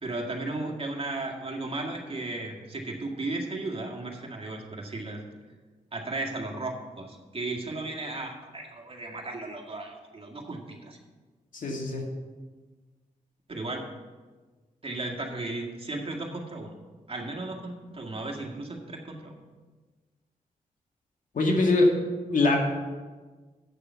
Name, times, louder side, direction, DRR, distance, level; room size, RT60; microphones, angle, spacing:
voice 1, 0.0-5.2 5.9-11.0 13.5-13.9 14.8-16.8 17.1-19.4, right 2 dB, 40° right, 1 dB, 2.0 m, -35 dB
voice 2, 11.5-12.0 21.3-21.9 22.3-22.6, left 2 dB, 65° left, 1 dB, 2.0 m, -22 dB
9.0 x 6.9 x 6.9 m, 1.3 s
cardioid pair, 70°, 15 cm